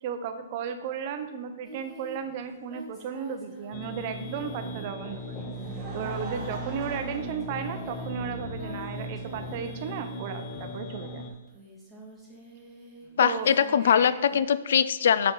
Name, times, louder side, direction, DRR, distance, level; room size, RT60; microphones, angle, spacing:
voice 1, 0.0-5.4 5.9-11.2 13.2-13.5 13.8-14.2, right 7 dB, 40° right, 8 dB, 0.7 m, -35 dB
Singing, 1.6-11.0 11.5-14.4, right 1 dB, ahead, 1.8 m, -47 dB
sound 1, 3.7-11.3, equal, 25° left, 0.9 m, -38 dB
Laughter, 5.1-8.3 9.1-9.2 10.7-10.8, right 2 dB, 25° right, 1.4 m, -42 dB
voice 2, 13.2-15.3, left 8 dB, 65° left, 15 dB, 0.3 m, -22 dB
6.2 x 4.6 x 3.8 m, 1.1 s
hypercardioid pair, 145°, 0 cm